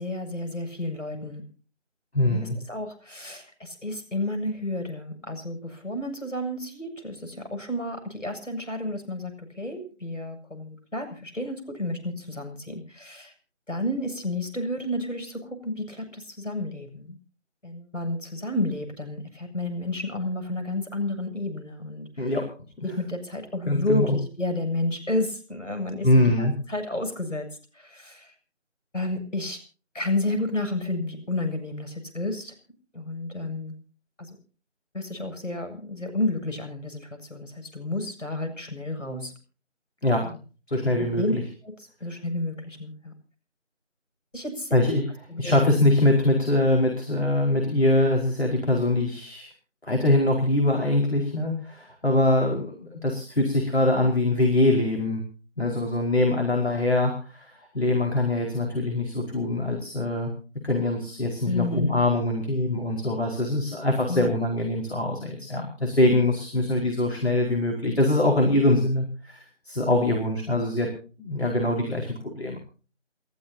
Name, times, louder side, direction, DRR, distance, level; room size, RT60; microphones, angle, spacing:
voice 1, 0.0-1.4 2.2-13.3 13.7-17.2 17.6-22.3 22.8-27.5 27.7-28.3 28.9-29.6 29.9-32.5 32.9-33.7 34.2-34.4 34.9-39.3 40.2-40.4 41.1-41.3 41.6-41.7 42.0-43.1 44.3-44.7 45.3-45.5 61.4-62.0 64.1-64.3, left 2 dB, 80° left, 6 dB, 7.6 m, -31 dB
voice 2, 2.1-2.6 22.2-22.5 23.6-24.2 26.0-26.5 40.0-40.3 40.7-41.4 44.7-45.0 45.4-49.5 49.8-55.2 55.6-60.3 60.6-70.9 71.2-72.6, left 1 dB, 60° left, 0 dB, 5.0 m, -23 dB
30.0 x 14.5 x 2.8 m, 0.38 s
figure-of-eight pair, 180°, 37 cm